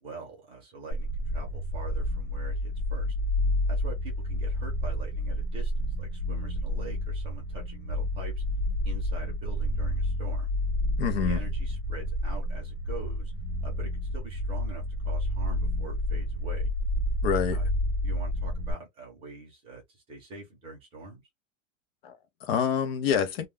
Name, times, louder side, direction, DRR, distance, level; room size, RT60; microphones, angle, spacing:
voice 1, 0.0-3.1 3.7-8.4 8.8-10.5 11.2-13.3 13.6-16.7 17.5-17.7 18.0-21.2, right 3 dB, 15° right, 0.6 m, -44 dB
sound 1, 0.9-18.7, left 1 dB, 80° left, 1.1 m, -30 dB
voice 2, 11.0-11.4 17.2-17.6 22.0-23.5, left 7 dB, 50° left, 0.6 m, -27 dB
2.3 x 2.2 x 3.4 m
supercardioid pair, 175°, 37 cm